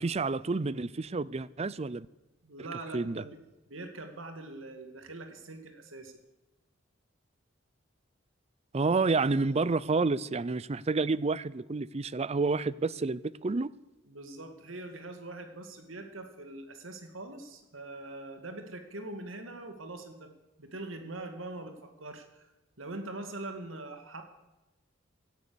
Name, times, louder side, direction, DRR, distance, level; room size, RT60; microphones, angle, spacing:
voice 1, 0.0-2.1 2.9-3.2 8.7-13.7, right 3 dB, 35° right, 0.5 m, -29 dB
voice 2, 2.4-3.4 3.7-6.1 14.1-20.3 20.6-22.5 22.8-24.2, right 2 dB, 80° right, 2.3 m, -43 dB
17.0 x 12.0 x 7.0 m
head